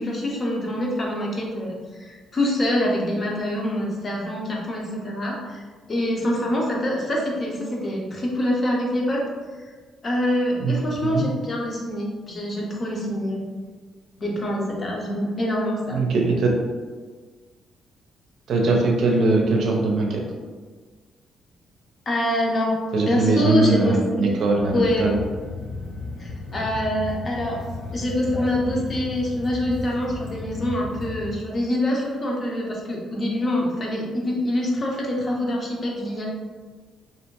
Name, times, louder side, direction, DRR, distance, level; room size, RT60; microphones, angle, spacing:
voice 1, 0.0-5.6 5.9-9.2 10.0-13.5 14.2-16.0 22.1-22.8 23.1-24.3 24.7-25.1 26.2-27.6 27.9-36.3, left 1 dB, 40° left, -2 dB, 0.6 m, -25 dB
voice 2, 15.9-16.5 18.5-20.2 22.9-25.2, right 3 dB, 70° right, 0 dB, 0.5 m, -21 dB
sound 1, 24.6-31.4, left 3 dB, 80° left, 0.4 m, -34 dB
2.6 x 2.1 x 2.9 m, 1.4 s
cardioid pair, 90°, 0 cm